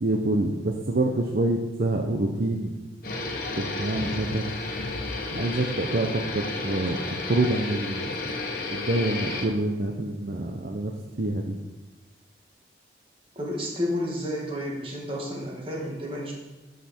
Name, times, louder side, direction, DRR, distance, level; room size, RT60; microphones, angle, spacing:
voice 1, 0.0-2.7 3.6-4.5 5.3-8.1 8.7-10.9 11.2-11.6, right 2 dB, 55° right, 2 dB, 0.7 m, -26 dB
sound 1, 3.0-9.5, left 3 dB, 50° left, 1.2 m, -32 dB
voice 2, 13.4-16.3, left 1 dB, 30° right, -2 dB, 2.0 m, -31 dB
12.5 x 5.9 x 4.4 m, 1.1 s
head